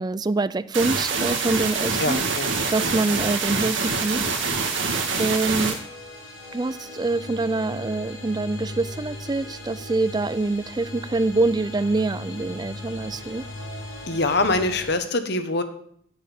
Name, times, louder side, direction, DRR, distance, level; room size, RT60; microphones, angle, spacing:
voice 1, 0.0-2.2 2.7-4.2 4.5-4.6 5.2-5.8 6.5-13.4, right 3 dB, 20° right, 16 dB, 0.4 m, -25 dB
sound 1, 0.7-5.7, right 4 dB, 70° right, 2.1 m, -25 dB
voice 2, 2.0-2.5 14.1-15.6, left 2 dB, 55° left, 9 dB, 1.2 m, -24 dB
sound 2, 3.0-15.0, left 2 dB, 80° left, 3.8 m, -39 dB
9.2 x 8.4 x 7.2 m, 0.67 s
head